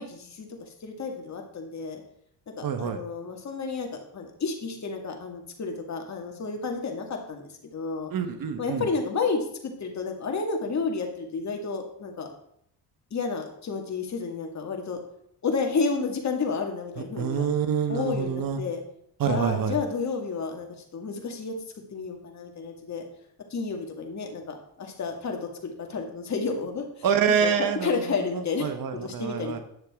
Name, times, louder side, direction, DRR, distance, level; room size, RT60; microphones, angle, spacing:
voice 1, 0.0-2.0 2.6-8.1 8.6-12.3 13.1-15.0 15.4-17.5 17.9-18.8 19.2-21.5 21.9-23.0 23.5-27.1 27.4-27.5 27.8-28.7 29.0-29.6, left 4 dB, 40° left, 2 dB, 2.1 m, -31 dB
voice 2, 2.6-3.0 8.1-8.9 17.2-18.6 19.2-19.8 27.0-28.0 28.3-29.6, right 7 dB, 55° right, 8 dB, 1.3 m, -26 dB
10.5 x 6.7 x 3.7 m, 0.71 s
cardioid pair, 85°, 41 cm